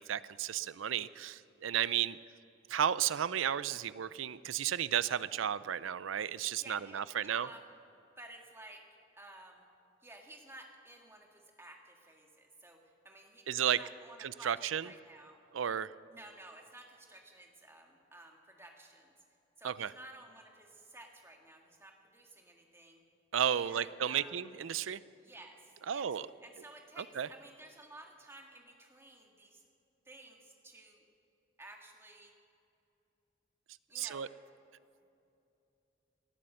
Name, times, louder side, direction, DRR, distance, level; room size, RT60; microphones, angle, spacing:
voice 1, 0.0-2.2 2.7-7.5 13.5-13.8 14.2-14.9 15.5-15.9 19.6-19.9 23.3-25.0 25.9-26.3 27.0-27.3 33.9-34.3, right 9 dB, 80° right, 17 dB, 0.5 m, -33 dB
voice 2, 6.6-7.6 8.2-8.8 9.1-9.7 10.0-12.8 13.0-15.4 16.1-19.1 19.6-23.0 23.5-24.4 25.2-26.1 26.4-29.6 30.1-31.0 31.6-32.3 33.9-34.3, right 2 dB, 15° right, 2 dB, 1.8 m, -54 dB
18.5 x 11.5 x 6.6 m, 2.8 s
head